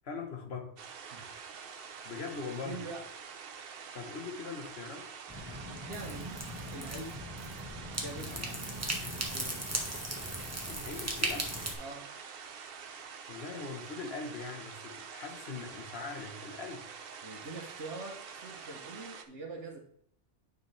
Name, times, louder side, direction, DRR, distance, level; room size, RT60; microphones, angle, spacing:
voice 1, 0.0-0.8 2.0-2.9 3.9-5.1 8.3-8.6 10.7-11.5 13.3-16.9, left 4 dB, 60° left, 1.5 m, -41 dB
sound 1, 0.8-19.3, right 6 dB, 55° right, 0.9 m, -47 dB
voice 2, 1.1-1.5 2.6-3.1 5.4-6.3 6.7-7.2 7.8-8.4 9.1-9.6 11.8-12.1 17.2-19.8, right 3 dB, 75° right, 1.4 m, -44 dB
sound 2, 5.3-11.7, right 1 dB, 15° right, 1.3 m, -37 dB
9.7 x 5.4 x 3.2 m
omnidirectional pair, 1.2 m